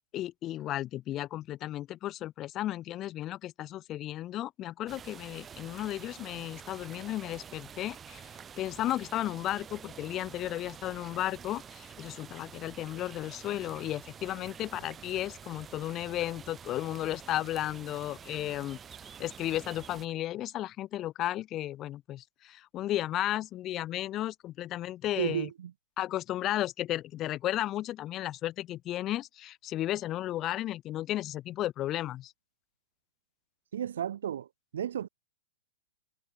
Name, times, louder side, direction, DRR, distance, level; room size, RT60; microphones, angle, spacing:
voice 1, 0.0-8.2 8.6-18.8 19.2-25.5 26.0-32.3, left 14 dB, 20° left, 4.8 m, -34 dB
sound 1, 4.9-20.1, right 7 dB, 10° right, 2.5 m, -48 dB
voice 2, 25.2-25.7 33.7-34.5 34.7-35.1, right 10 dB, 75° right, 3.9 m, -33 dB
supercardioid pair, 175°, 0 cm